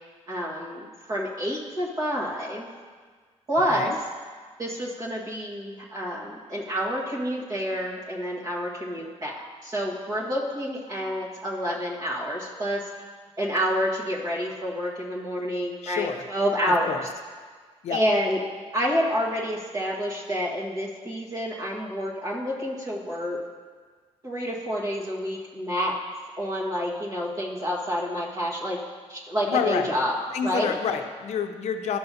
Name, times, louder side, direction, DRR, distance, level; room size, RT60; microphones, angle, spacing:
voice 1, 0.3-2.7 3.5-3.9 4.6-12.8 13.4-17.0 17.9-18.4 18.7-23.4 24.2-26.0 26.4-28.8 29.1-30.1 30.4-30.8, equal, 30° right, -5 dB, 1.6 m, -28 dB
voice 2, 15.8-16.2 16.7-17.0 17.8-18.0 29.5-29.9 30.3-32.0, left 7 dB, 70° left, 6 dB, 0.6 m, -28 dB
12.5 x 6.8 x 2.8 m, 1.6 s
wide cardioid pair, 175°, 12 cm